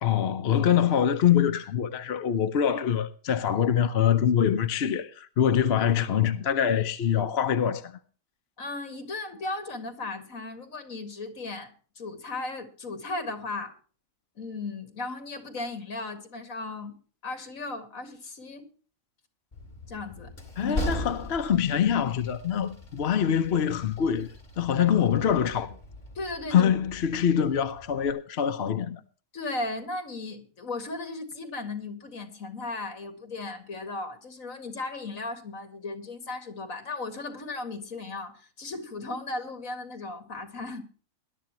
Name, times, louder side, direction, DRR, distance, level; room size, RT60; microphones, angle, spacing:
voice 1, 0.0-8.0 20.6-24.3 24.6-25.8 26.5-29.0, left 9 dB, 55° left, 1.0 m, -24 dB
voice 2, 8.6-13.7 14.4-16.9 17.2-18.7 19.9-20.3 20.6-21.2 24.8-24.9 26.2-26.7 29.3-40.8, left 3 dB, 75° left, 2.4 m, -36 dB
Train, 19.5-28.1, equal, 35° left, 2.9 m, -39 dB
20.0 x 12.0 x 3.0 m
omnidirectional pair, 1.4 m